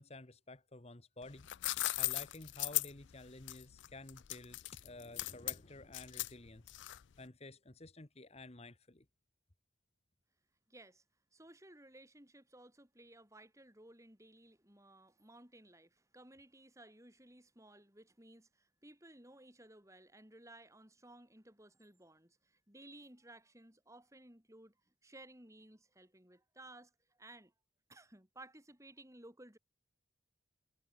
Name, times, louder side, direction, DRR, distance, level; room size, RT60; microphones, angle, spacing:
voice 1, 0.0-1.5 2.0-9.0, left 2 dB, 30° left, 1.4 m, -52 dB
sound 1, 1.2-7.2, left 19 dB, 65° left, 0.4 m, -38 dB
voice 2, 10.7-11.0 11.3-27.5 27.9-29.6, right 1 dB, 15° right, 6.4 m, -58 dB
head